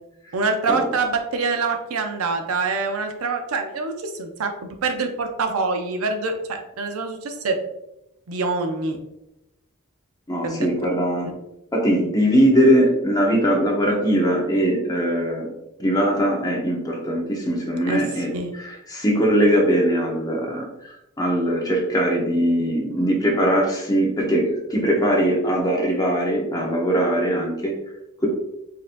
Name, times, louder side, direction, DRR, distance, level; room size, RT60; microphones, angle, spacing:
voice 1, 0.3-7.6 8.3-9.0 10.4-10.7 17.9-18.0 18.3-18.5, right 4 dB, 80° right, 4 dB, 0.6 m, -25 dB
voice 2, 10.3-11.3 11.7-15.5 15.8-27.8 28.2-28.3, equal, 15° left, -1 dB, 0.8 m, -21 dB
5.1 x 2.7 x 2.5 m, 0.86 s
head